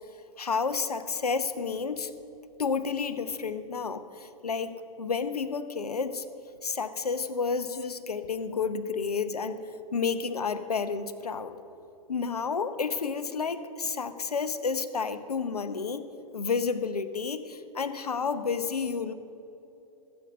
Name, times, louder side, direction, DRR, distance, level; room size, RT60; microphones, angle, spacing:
voice 1, 0.4-2.1 2.6-6.2 6.6-9.6 9.9-11.6 12.1-16.1 16.3-19.1, left 5 dB, 80° left, 12 dB, 0.8 m, -30 dB
15.0 x 8.0 x 6.6 m, 3.0 s
figure-of-eight pair, 105°, 19 cm